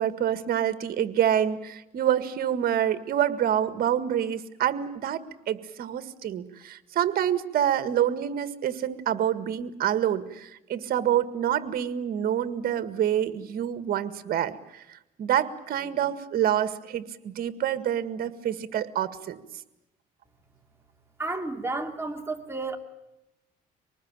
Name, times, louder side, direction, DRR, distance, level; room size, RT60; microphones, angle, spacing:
voice 1, 0.0-19.4, right 10 dB, 60° right, 12 dB, 1.8 m, -27 dB
voice 2, 21.2-22.8, right 3 dB, 15° right, 3 dB, 2.7 m, -32 dB
25.0 x 20.0 x 8.9 m, 0.90 s
cardioid pair, 110°, 17 cm